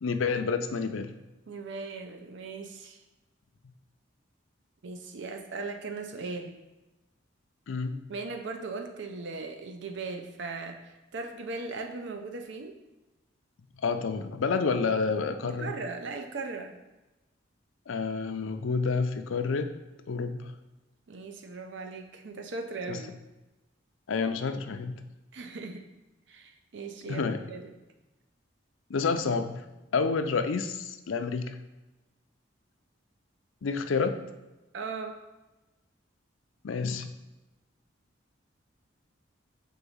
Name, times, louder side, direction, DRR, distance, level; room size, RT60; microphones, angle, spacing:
voice 1, 0.0-1.1 7.7-8.0 13.8-15.7 17.9-19.7 20.1-20.5 22.9-23.0 24.1-24.9 27.1-27.5 28.9-29.6 29.9-31.6 33.6-34.2 36.6-37.1, left 4 dB, 85° left, 7 dB, 0.5 m, -29 dB
voice 2, 1.5-3.0 4.8-6.6 8.1-12.8 15.4-16.8 21.1-23.1 25.3-25.8 26.3-27.7 34.7-35.2, right 3 dB, 70° right, 4 dB, 0.5 m, -38 dB
4.7 x 3.9 x 5.4 m, 1.0 s
head